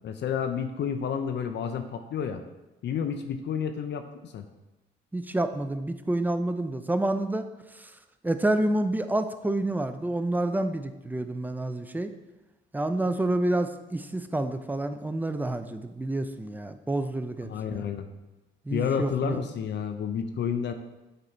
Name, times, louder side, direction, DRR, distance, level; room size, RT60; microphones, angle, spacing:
voice 1, 0.0-2.4 2.8-4.5 17.4-18.1 18.7-20.7, left 7 dB, 60° left, 7 dB, 0.6 m, -30 dB
voice 2, 5.1-7.5 7.7-7.9 8.2-12.1 12.7-17.8 18.7-19.4, right 1 dB, 10° right, 9 dB, 0.5 m, -28 dB
7.7 x 4.1 x 4.4 m, 1.0 s
cardioid pair, 90°, 20 cm